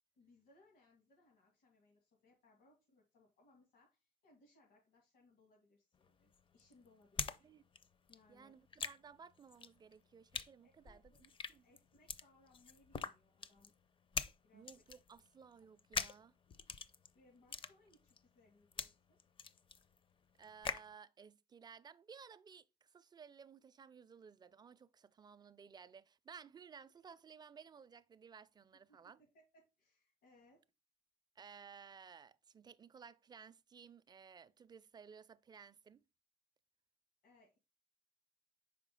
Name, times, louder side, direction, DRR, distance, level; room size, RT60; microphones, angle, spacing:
voice 1, 0.2-7.5 8.1-8.6 10.6-11.4 11.6-13.7 14.4-14.8 17.1-19.2 28.7-30.6 37.2-37.6, left 2 dB, 85° left, 2.3 m, -69 dB
sound 1, 5.9-7.4 7.7-20.9, left 5 dB, 30° left, 0.5 m, -45 dB
voice 2, 8.3-11.6 14.5-16.4 20.4-29.2 31.4-36.0, right 6 dB, 25° right, 0.4 m, -57 dB
5.7 x 5.0 x 3.7 m
cardioid pair, 110°, 17 cm